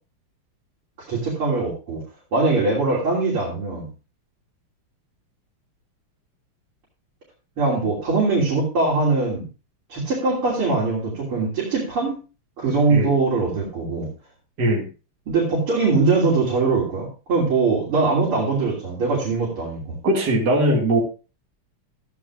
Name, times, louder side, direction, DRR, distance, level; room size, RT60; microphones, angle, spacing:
voice 1, 1.1-2.0 2.3-3.9 7.6-9.4 9.9-12.2 12.6-14.1 15.3-19.8, right 3 dB, 75° right, -6 dB, 3.9 m, -22 dB
voice 2, 20.0-21.0, right 1 dB, 50° right, -1 dB, 2.7 m, -20 dB
14.0 x 10.0 x 2.4 m, 0.33 s
omnidirectional pair, 2.4 m